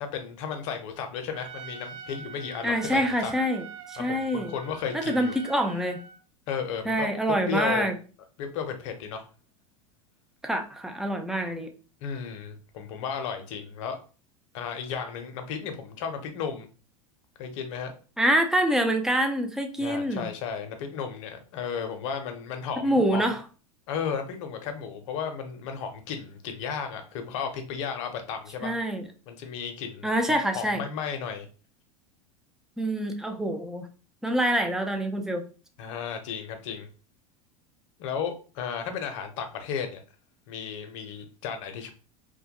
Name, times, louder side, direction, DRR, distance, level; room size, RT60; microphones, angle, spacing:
voice 1, 0.0-3.3 4.0-5.4 6.5-7.9 8.4-9.3 12.0-14.0 14.5-16.7 17.4-18.0 19.8-23.2 23.9-28.8 29.3-31.5 35.8-36.9 38.0-40.0 40.5-41.9, left 7 dB, 65° left, 6 dB, 0.6 m, -34 dB
Trumpet, 1.3-6.2, right 5 dB, 65° right, 0.5 m, -43 dB
voice 2, 2.6-4.5 4.9-6.0 6.8-7.9 10.4-11.7 18.2-20.3 22.8-23.4 28.6-29.1 30.0-30.8 32.8-33.9 34.2-35.4, right 1 dB, 5° right, 4 dB, 0.4 m, -26 dB
2.2 x 2.1 x 2.9 m, 0.37 s
hypercardioid pair, 100°, 18 cm